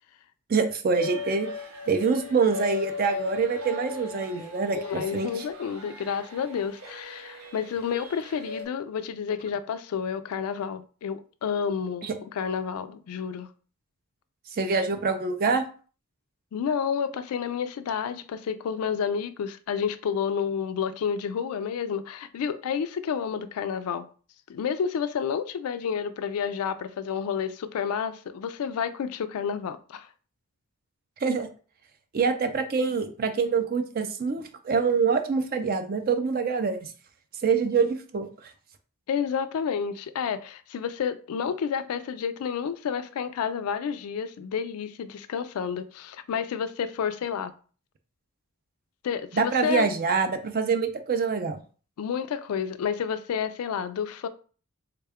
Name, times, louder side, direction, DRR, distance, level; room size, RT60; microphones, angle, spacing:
voice 1, 0.5-1.5 1.9-5.4 12.0-12.2 14.5-15.6 31.2-31.5 32.1-36.9 37.4-38.5 49.3-51.6, right 5 dB, 40° right, 0.4 m, -25 dB
sound 1, 0.9-8.7, left 5 dB, 85° right, 0.8 m, -37 dB
voice 2, 4.8-13.5 16.5-24.1 24.5-30.1 39.1-47.5 49.0-49.9 52.0-54.3, left 7 dB, 80° left, 0.3 m, -30 dB
3.5 x 2.2 x 3.5 m
head